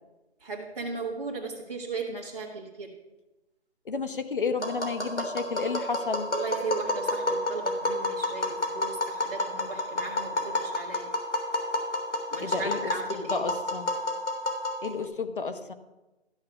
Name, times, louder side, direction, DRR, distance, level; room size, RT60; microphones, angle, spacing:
voice 1, 0.4-2.9 6.3-11.1 12.3-13.4, right 4 dB, 35° right, -4 dB, 1.4 m, -36 dB
voice 2, 3.9-6.3 12.4-14.0 14.8-15.7, left 4 dB, 50° left, 9 dB, 1.0 m, -31 dB
Tap, 4.6-15.1, left 1 dB, 80° left, 3.3 m, -30 dB
13.0 x 6.5 x 6.8 m, 1.1 s
figure-of-eight pair, 170°, 34 cm